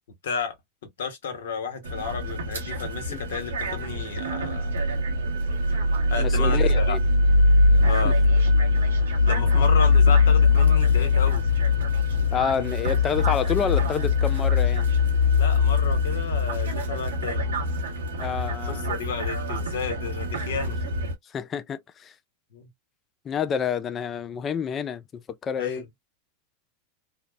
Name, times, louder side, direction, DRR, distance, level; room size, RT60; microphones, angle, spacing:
voice 1, 0.2-0.6 1.0-4.9 6.1-7.0 7.8-8.2 9.3-11.4 15.3-17.5 18.7-20.8 22.5-22.7 25.6-25.9, left 5 dB, 80° left, 1.0 m, -32 dB
sound 1, 1.8-21.1, left 3 dB, 90° right, 0.9 m, -22 dB
voice 2, 6.2-7.0 8.0-8.1 9.6-9.7 12.3-14.9 18.2-18.9 21.3-22.1 23.2-25.0 25.4-25.8, left 7 dB, 30° left, 0.4 m, -28 dB
2.7 x 2.0 x 2.3 m
hypercardioid pair, 105°, 0 cm